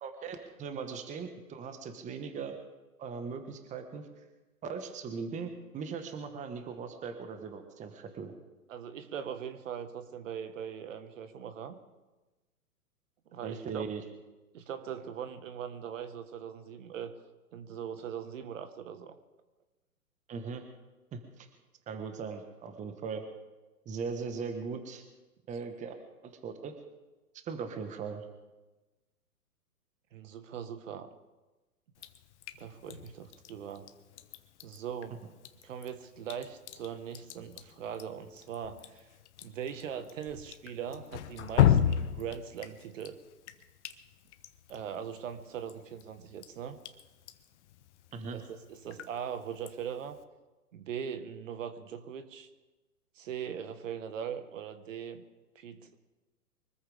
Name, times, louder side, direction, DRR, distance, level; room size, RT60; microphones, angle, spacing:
voice 1, 0.0-2.6 3.0-4.0 4.6-8.3 13.4-14.0 20.3-20.6 21.1-21.5 21.9-23.2 23.8-25.0 25.5-25.9 26.2-26.7 27.4-28.2 48.1-48.4, right 5 dB, 15° right, 7 dB, 1.4 m, -39 dB
voice 2, 8.7-11.8 13.3-13.9 14.5-17.1 17.5-19.2 30.1-31.1 32.6-33.9 34.6-35.2 35.6-39.1 39.4-43.2 44.7-46.8 48.3-50.2 50.7-52.5 53.2-55.2 55.6-56.0, right 8 dB, 55° right, 9 dB, 1.6 m, -40 dB
Drip, 32.0-50.2, left 10 dB, 45° left, 1.2 m, -36 dB
24.5 x 14.0 x 3.6 m, 1.1 s
hypercardioid pair, 125°, 46 cm